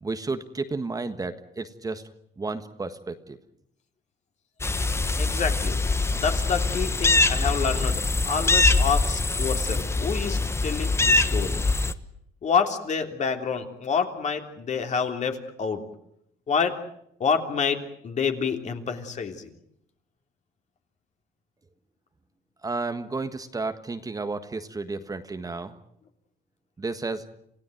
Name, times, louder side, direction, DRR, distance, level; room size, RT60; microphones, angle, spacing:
voice 1, 0.0-2.0 2.4-3.4 22.6-25.7 26.8-27.2, right 3 dB, 20° right, 8 dB, 1.5 m, -32 dB
sound 1, 4.6-11.9, left 3 dB, 15° left, 1.2 m, -23 dB
voice 2, 5.2-5.8 6.1-11.6 12.4-15.8 16.5-16.8 17.2-19.5, left 6 dB, 45° left, 5 dB, 3.2 m, -28 dB
28.0 x 16.5 x 9.2 m, 0.74 s
cardioid pair, 110°, 17 cm